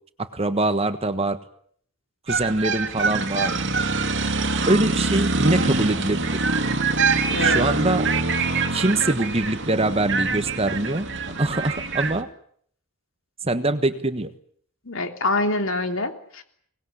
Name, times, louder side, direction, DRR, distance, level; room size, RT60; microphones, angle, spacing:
voice 1, 0.2-1.4 2.3-3.6 4.7-6.4 7.4-8.1 8.7-11.1 11.4-12.3 13.4-14.3, right 2 dB, 25° right, 10 dB, 1.4 m, -23 dB
sound 1, 2.3-12.2, right 3 dB, 55° right, 2.4 m, -24 dB
voice 2, 7.3-7.7 14.8-16.4, left 2 dB, 60° left, 6 dB, 3.3 m, -25 dB
24.5 x 20.0 x 9.9 m, 0.64 s
head